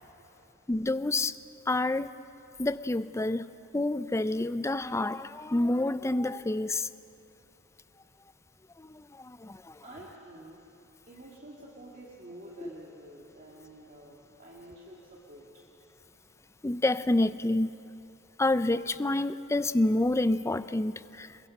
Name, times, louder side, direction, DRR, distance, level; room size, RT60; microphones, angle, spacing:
voice 1, 0.2-0.5 9.8-10.6 11.1-15.6, right 1 dB, 40° right, -4 dB, 2.3 m, -49 dB
voice 2, 0.7-1.4 1.7-2.1 2.6-3.5 3.7-6.9 8.8-9.8 12.6-12.7 16.6-17.8 18.4-21.4, left 2 dB, 15° left, 14 dB, 0.4 m, -28 dB
28.0 x 22.5 x 5.4 m, 2.8 s
head